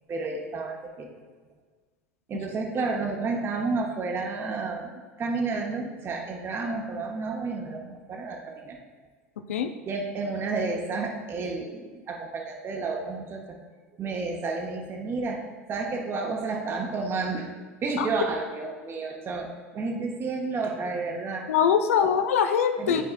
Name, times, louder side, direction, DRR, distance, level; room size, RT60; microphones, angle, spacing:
voice 1, 0.1-1.1 2.3-8.8 9.9-13.6 14.0-15.4 15.7-17.5 17.8-21.5 22.0-22.1 22.8-23.0, right 3 dB, 30° right, 2 dB, 0.8 m, -31 dB
voice 2, 21.5-23.0, left 7 dB, 70° left, 8 dB, 0.4 m, -22 dB
11.0 x 4.6 x 2.2 m, 1.4 s
figure-of-eight pair, 80°, 8 cm